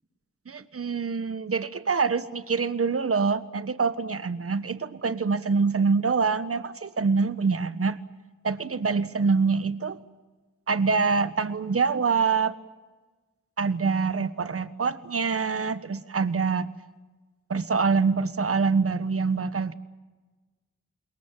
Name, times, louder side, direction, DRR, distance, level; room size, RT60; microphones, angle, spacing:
voice 1, 0.5-8.0 8.4-10.0 10.7-12.5 13.6-16.7 17.5-19.7, right 5 dB, 50° right, 13 dB, 1.4 m, -25 dB
27.5 x 22.0 x 7.5 m, 1.3 s
cardioid pair, 60°, 29 cm